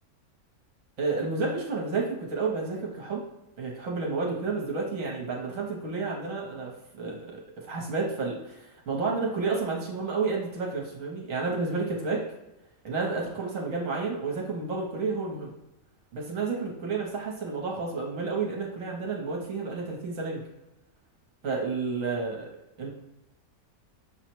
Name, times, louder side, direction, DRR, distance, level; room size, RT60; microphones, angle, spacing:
voice 1, 1.0-3.2 3.6-12.2 12.8-15.5 16.1-20.4 21.4-22.5 22.8-22.9, right 4 dB, 65° right, -1 dB, 1.1 m, -31 dB
5.9 x 2.0 x 4.4 m, 0.98 s
omnidirectional pair, 1.6 m